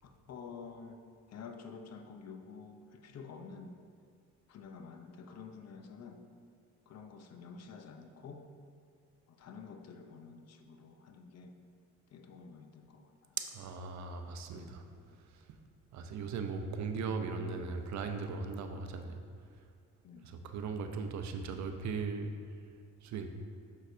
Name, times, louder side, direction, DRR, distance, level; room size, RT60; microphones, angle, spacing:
voice 1, 0.0-1.0 1.3-3.7 4.5-6.2 6.9-8.5 9.3-11.5 12.1-13.1 14.5-14.8 20.0-20.3, left 5 dB, 60° left, 6 dB, 0.6 m, -49 dB
voice 2, 13.4-14.8 15.9-19.2 20.2-22.3 23.0-23.3, right 5 dB, 65° right, 6 dB, 0.6 m, -38 dB
6.4 x 6.2 x 2.7 m, 2.2 s
cardioid pair, 90°, 30 cm